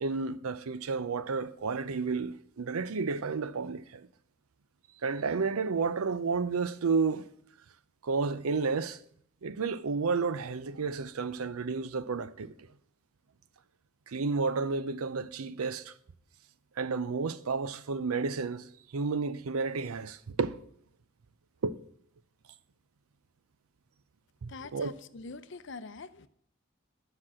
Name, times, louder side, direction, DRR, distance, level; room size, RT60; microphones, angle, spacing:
voice 1, 0.0-4.1 5.0-7.3 8.0-9.0 9.4-12.5 14.1-15.9 16.8-18.7 18.9-20.6 21.6-21.8 24.4-24.9, right 4 dB, 85° right, 0.6 m, -31 dB
voice 2, 24.5-26.3, left 4 dB, 55° left, 0.6 m, -44 dB
10.0 x 6.1 x 7.4 m
head